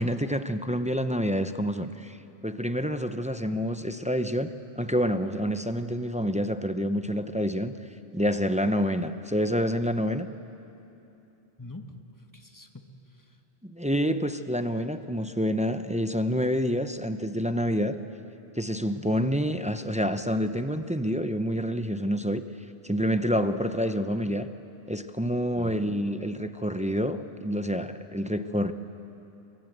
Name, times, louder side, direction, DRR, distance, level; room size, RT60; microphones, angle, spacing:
voice 1, 0.0-2.2 2.4-7.7 8.1-10.3 13.6-18.0 18.5-22.4 22.8-24.5 24.9-28.7, equal, 10° right, 9 dB, 0.5 m, -28 dB
voice 2, 11.6-13.4 25.6-25.8, left 2 dB, 20° left, 5 dB, 1.3 m, -45 dB
25.5 x 22.0 x 8.0 m, 2.9 s
omnidirectional pair, 1.1 m